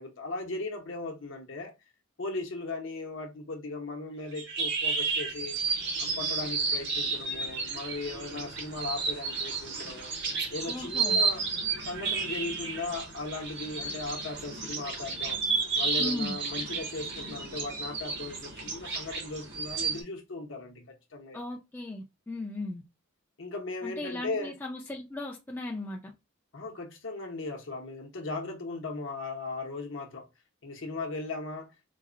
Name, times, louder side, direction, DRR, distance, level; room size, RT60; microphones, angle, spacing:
voice 1, 0.0-1.7 2.2-5.5 6.0-10.1 10.5-11.4 11.9-15.4 15.8-21.4 23.4-24.6 26.5-30.3 30.6-31.7, left 3 dB, 60° left, 0.8 m, -37 dB
sound 1, 4.3-20.0, right 4 dB, 50° right, 0.8 m, -32 dB
voice 2, 10.7-11.2 16.0-16.4 21.3-22.8 23.8-26.1, left 2 dB, 10° left, 0.4 m, -37 dB
4.0 x 2.1 x 2.4 m
head